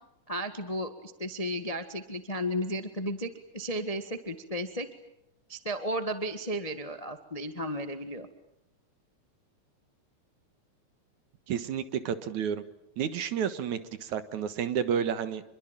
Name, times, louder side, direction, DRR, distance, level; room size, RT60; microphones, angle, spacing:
voice 1, 0.3-4.9 5.5-8.3, equal, 20° left, 8 dB, 0.9 m, -34 dB
voice 2, 11.5-12.6 13.0-15.4, right 8 dB, 70° right, 11 dB, 2.9 m, -31 dB
26.5 x 23.0 x 9.1 m, 0.83 s
omnidirectional pair, 3.5 m